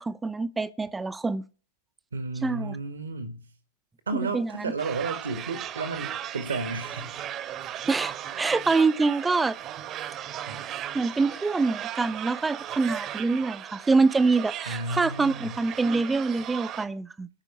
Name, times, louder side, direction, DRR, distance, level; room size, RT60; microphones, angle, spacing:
voice 1, 0.0-1.4 2.4-2.8 4.1-4.7 7.9-9.6 10.9-17.3, right 3 dB, 10° right, 0.6 m, -25 dB
voice 2, 2.1-3.4 4.1-7.1 10.5-10.6 14.7-15.6, right 3 dB, 70° right, 1.4 m, -33 dB
sound 1, 4.8-16.9, right 11 dB, 30° right, 1.0 m, -37 dB
13.5 x 5.3 x 9.3 m
figure-of-eight pair, 90°, 0 cm